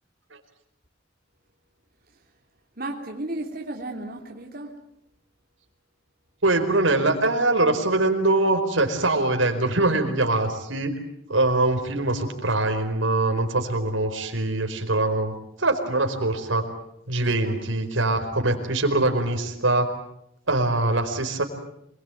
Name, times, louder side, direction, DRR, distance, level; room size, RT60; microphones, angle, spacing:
voice 1, 2.8-4.8 17.1-17.5, right 2 dB, 50° right, 0 dB, 3.2 m, -34 dB
voice 2, 6.4-10.9 11.3-15.3 15.6-16.6 17.1-19.9 20.5-21.4, right 2 dB, 80° right, 5 dB, 4.7 m, -23 dB
27.5 x 22.5 x 9.2 m, 0.76 s
head